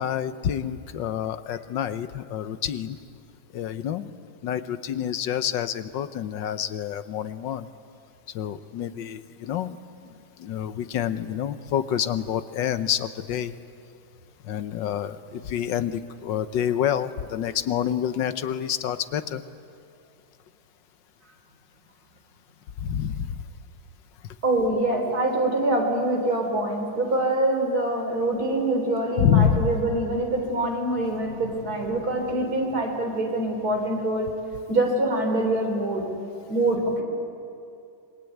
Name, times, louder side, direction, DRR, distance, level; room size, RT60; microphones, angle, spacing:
voice 1, 0.0-3.0 3.5-4.1 4.4-7.7 8.3-9.8 10.4-13.6 14.4-19.4 22.8-23.4 24.2-24.3 29.2-29.7, left 9 dB, 90° left, 12 dB, 1.7 m, -27 dB
voice 2, 24.4-34.3 34.7-36.0 36.5-37.0, right 1 dB, 55° right, 2 dB, 4.5 m, -25 dB
26.5 x 22.5 x 9.3 m, 2.6 s
omnidirectional pair, 1.9 m